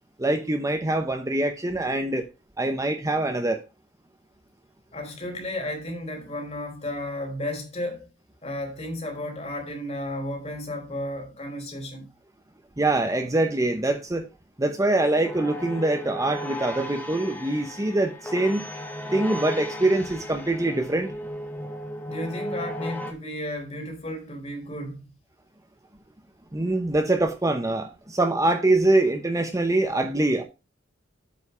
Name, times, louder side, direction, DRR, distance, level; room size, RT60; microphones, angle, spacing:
voice 1, 0.2-2.3 2.6-3.6 12.8-14.3 14.6-18.7 19.1-21.1 26.5-30.4, right 2 dB, 15° right, 0.8 m, -24 dB
voice 2, 4.9-8.1 8.4-12.1 22.1-25.0, left 1 dB, 35° left, 3.3 m, -33 dB
sound 1, 15.0-23.1, equal, 10° left, 1.1 m, -35 dB
8.2 x 5.3 x 5.6 m
head